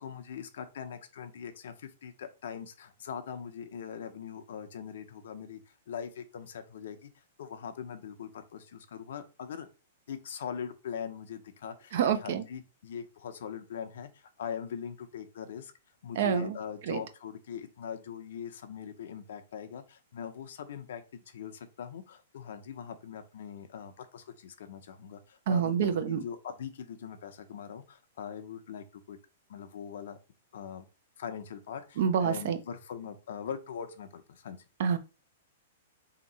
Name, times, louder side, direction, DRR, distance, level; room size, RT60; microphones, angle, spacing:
voice 1, 0.0-5.6 5.9-7.1 7.4-9.7 10.1-15.7 16.0-29.2 29.5-30.2 30.5-30.9 31.2-34.6, left 7 dB, 70° left, 7 dB, 0.7 m, -41 dB
voice 2, 11.9-12.4 16.2-16.6 16.9-17.0 25.5-26.2 32.0-32.6 34.8-35.0, right 7 dB, 60° right, 9 dB, 0.7 m, -27 dB
3.5 x 2.9 x 4.1 m, 0.31 s
hypercardioid pair, 155°, 0 cm